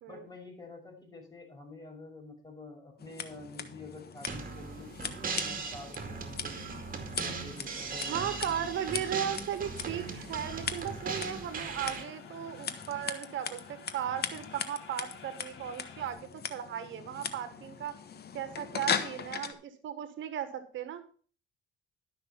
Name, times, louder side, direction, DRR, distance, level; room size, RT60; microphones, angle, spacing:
voice 1, 0.1-6.6 7.2-8.7, left 2 dB, 20° left, 1 dB, 5.7 m, -48 dB
Scissors, 3.0-19.5, left 7 dB, 55° left, 1.3 m, -40 dB
sound 1, 4.3-12.0, right 5 dB, 45° right, 2.4 m, -38 dB
voice 2, 8.1-17.9 18.3-21.0, right 9 dB, 75° right, 11 dB, 1.4 m, -36 dB
sound 2, 10.3-16.1, left 6 dB, 70° left, 2.7 m, -53 dB
12.0 x 6.2 x 5.7 m, 0.41 s
cardioid pair, 90°, 20 cm